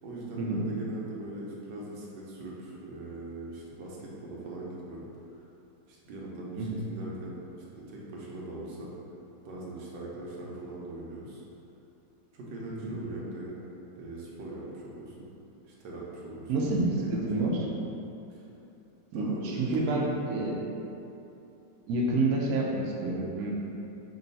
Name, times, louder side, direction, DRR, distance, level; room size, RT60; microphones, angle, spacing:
voice 1, 0.0-5.1 5.9-7.4 7.7-8.9 9.4-11.4 12.3-13.6 13.9-15.3 15.7-17.7 18.3-18.4 19.1-20.1, right 2 dB, 85° right, -4 dB, 1.5 m, -40 dB
voice 2, 16.5-17.6 19.1-20.6 21.9-23.5, right 2 dB, 70° right, -2 dB, 1.0 m, -28 dB
5.2 x 2.3 x 3.9 m, 2.9 s
omnidirectional pair, 1.9 m